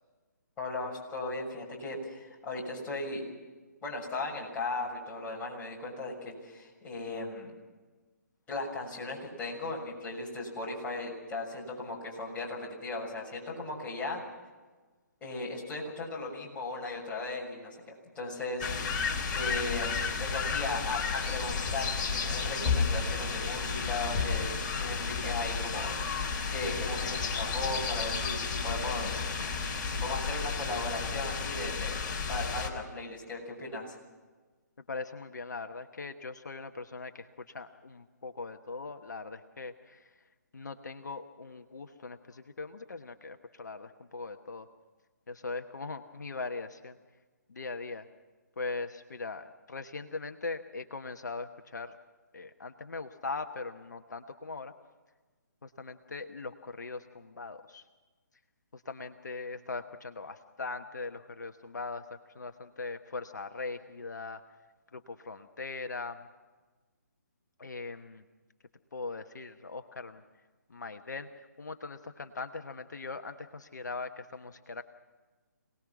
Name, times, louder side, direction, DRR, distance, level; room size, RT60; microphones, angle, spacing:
voice 1, 0.6-3.3 3.8-7.5 8.5-14.2 15.2-17.7 18.1-18.7 19.3-29.2 29.8-32.0 32.3-33.9, left 2 dB, 15° left, -4 dB, 6.8 m, -37 dB
sound 1, 18.6-32.7, left 5 dB, 30° left, 3.6 m, -32 dB
voice 2, 34.9-40.1 40.5-44.7 45.3-47.0 47.5-48.1 48.6-52.0 52.3-54.7 55.6-57.8 58.7-64.4 64.9-66.3 67.6-68.2 68.9-70.2 70.7-74.8, left 3 dB, 70° left, 7 dB, 1.1 m, -40 dB
27.5 x 19.5 x 6.1 m, 1.3 s
figure-of-eight pair, 140°, 10 cm